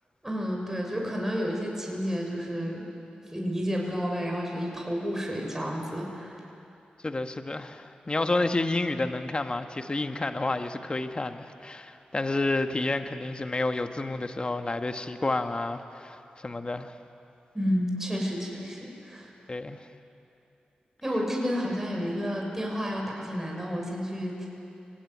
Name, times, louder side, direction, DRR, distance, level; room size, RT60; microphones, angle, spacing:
voice 1, 0.2-2.9 3.3-6.4 17.5-19.3 21.0-24.5, equal, 15° right, -1 dB, 6.2 m, -31 dB
voice 2, 7.0-17.0 19.5-19.8, left 2 dB, 35° left, 7 dB, 1.3 m, -30 dB
24.5 x 18.0 x 9.3 m, 2.8 s
cardioid pair, 50°, 3 cm